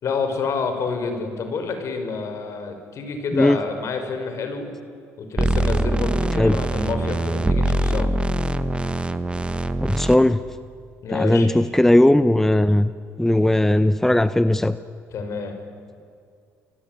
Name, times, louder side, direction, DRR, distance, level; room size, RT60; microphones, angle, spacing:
voice 1, 0.0-4.7 5.2-8.1 11.0-11.5 15.1-15.6, left 4 dB, 55° left, 6 dB, 5.7 m, -28 dB
sound 1, 5.4-10.2, right 2 dB, 20° right, 1.5 m, -23 dB
voice 2, 9.8-10.4 11.1-12.9 13.2-14.8, left 1 dB, 5° left, 13 dB, 0.8 m, -17 dB
29.0 x 21.0 x 9.5 m, 2.2 s
supercardioid pair, 80°, 6 cm